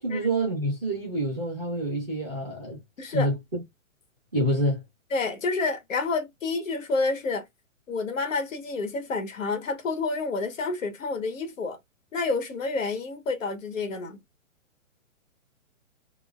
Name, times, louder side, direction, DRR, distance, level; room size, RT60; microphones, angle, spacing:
voice 1, 0.0-3.6 4.3-4.8, right 1 dB, ahead, 0.5 m, -27 dB
voice 2, 3.0-3.3 5.1-7.4 7.9-11.8 12.1-14.2, left 3 dB, 70° left, 1.4 m, -29 dB
3.7 x 2.0 x 2.4 m
hypercardioid pair, 170°, 40 cm